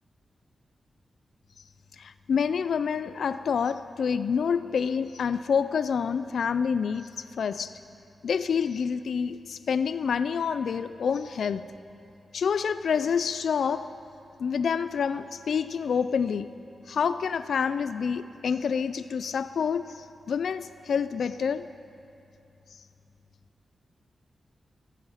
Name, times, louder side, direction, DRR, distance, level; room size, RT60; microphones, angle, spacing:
voice 1, 2.0-7.7 8.2-11.7 12.3-13.9 14.4-16.5 16.9-21.7, left 6 dB, 80° left, 13 dB, 0.3 m, -27 dB
16.0 x 14.5 x 5.7 m, 2.7 s
wide cardioid pair, 140°, 0 cm